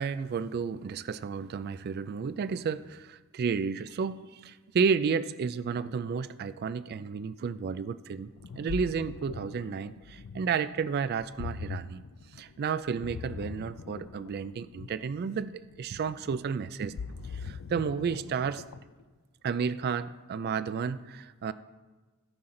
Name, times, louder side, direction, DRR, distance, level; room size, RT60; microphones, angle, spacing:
voice 1, 0.0-12.0 12.3-16.9 17.3-18.7 19.4-21.5, right 6 dB, 45° right, 15 dB, 0.3 m, -32 dB
Ocean, 8.2-19.0, left 5 dB, 80° left, 0.4 m, -42 dB
17.5 x 5.9 x 3.8 m, 1.3 s
head